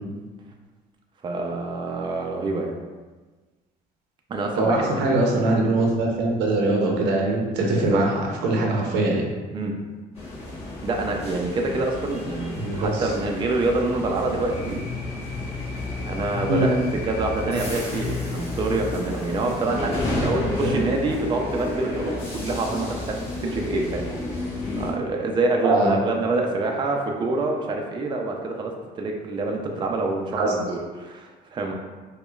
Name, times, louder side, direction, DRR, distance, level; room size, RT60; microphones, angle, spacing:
voice 1, 1.2-2.7 4.3-5.0 5.8-5.9 7.6-8.0 9.5-9.7 10.8-14.8 16.0-16.8 17.1-24.0 24.8-31.7, right 2 dB, 30° right, 1 dB, 0.4 m, -26 dB
voice 2, 4.6-8.1 8.4-9.2 12.6-13.1 16.5-16.7 20.4-20.8 25.6-25.9 30.4-30.5, right 2 dB, 85° right, -1 dB, 0.7 m, -22 dB
sound 1, 10.1-24.9, left 2 dB, 35° left, 1.4 m, -32 dB
sound 2, 14.2-19.6, left 5 dB, 60° left, 0.7 m, -35 dB
4.9 x 2.1 x 2.3 m, 1.3 s
cardioid pair, 110°, 17 cm